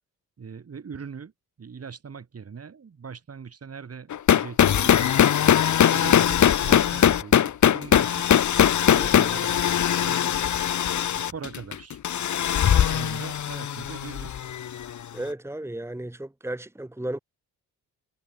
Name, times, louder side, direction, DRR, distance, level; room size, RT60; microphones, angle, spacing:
voice 1, 0.4-1.3 1.6-5.3 5.9-8.2 9.1-12.0 12.3-14.3, right 6 dB, 40° right, 3.1 m, -41 dB
sound 1, 4.1-14.9, left 9 dB, 50° left, 1.2 m, -21 dB
voice 2, 8.9-9.5 15.1-17.2, right 1 dB, 5° right, 1.7 m, -34 dB
cardioid pair, 80°, 37 cm